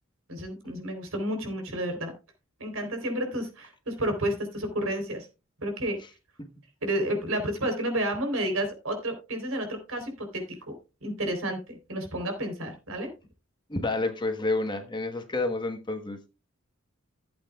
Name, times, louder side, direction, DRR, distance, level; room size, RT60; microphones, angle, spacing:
voice 1, 0.3-2.1 2.6-5.3 5.6-6.0 6.8-10.7 11.0-13.1, right 1 dB, 75° right, 3.8 m, -31 dB
voice 2, 13.7-16.3, left 2 dB, 20° left, 1.2 m, -29 dB
16.0 x 8.2 x 2.3 m
head